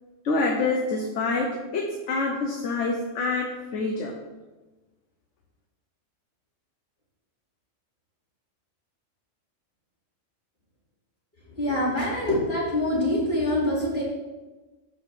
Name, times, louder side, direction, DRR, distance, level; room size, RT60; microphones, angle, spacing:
voice 1, 0.2-4.1, left 3 dB, 70° left, 1 dB, 1.2 m, -26 dB
voice 2, 11.5-14.0, left 1 dB, 50° left, -7 dB, 3.3 m, -25 dB
6.4 x 5.7 x 5.9 m, 1.2 s
omnidirectional pair, 1.3 m